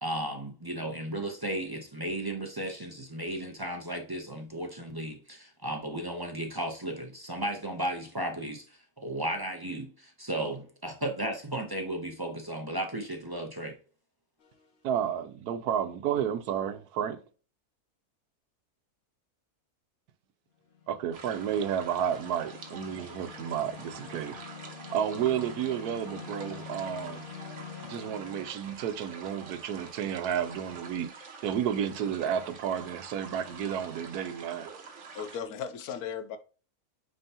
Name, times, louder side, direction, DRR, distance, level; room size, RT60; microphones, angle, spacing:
voice 1, 0.0-13.7, right 1 dB, 25° right, 0.5 m, -35 dB
sound 1, 14.4-14.8 20.7-28.5, left 7 dB, 45° left, 1.0 m, -46 dB
voice 2, 14.8-17.2 20.9-24.4 24.9-27.3 27.8-31.1 31.4-34.7, right 9 dB, 85° right, 1.2 m, -31 dB
sound 2, 21.1-35.4, right 4 dB, 55° right, 1.2 m, -47 dB
voice 3, 35.1-36.4, left 7 dB, 80° left, 1.2 m, -36 dB
8.8 x 3.8 x 2.8 m
omnidirectional pair, 1.6 m